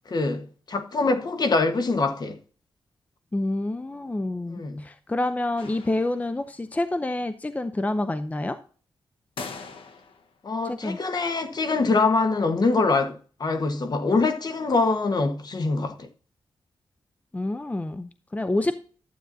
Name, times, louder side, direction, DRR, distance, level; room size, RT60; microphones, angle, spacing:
voice 1, 0.1-2.4 4.5-4.8 10.4-16.1, left 3 dB, 50° left, 1.3 m, -24 dB
voice 2, 3.3-8.6 10.6-11.0 17.3-18.7, left 2 dB, 15° left, 0.6 m, -28 dB
sound 1, 5.6-6.5 9.4-10.4, left 4 dB, 75° left, 1.2 m, -41 dB
12.0 x 8.7 x 2.7 m
cardioid pair, 85°, 9 cm